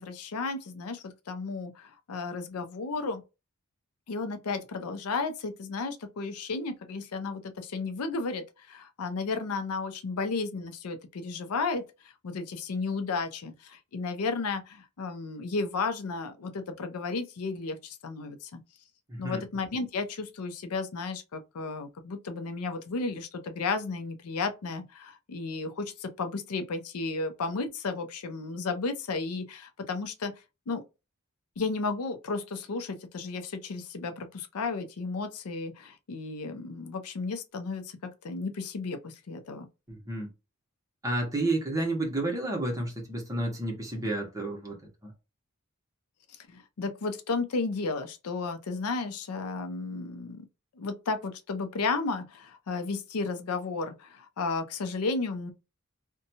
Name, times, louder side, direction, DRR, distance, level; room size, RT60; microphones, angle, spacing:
voice 1, 0.0-3.2 4.1-11.8 12.2-18.6 19.2-30.3 30.7-30.8 31.6-39.7 46.5-50.4 50.8-55.5, left 4 dB, 90° left, 0.5 m, -33 dB
voice 2, 19.1-19.4 39.9-40.3 41.0-45.1, right 2 dB, 15° right, 0.9 m, -31 dB
2.6 x 2.2 x 2.8 m
head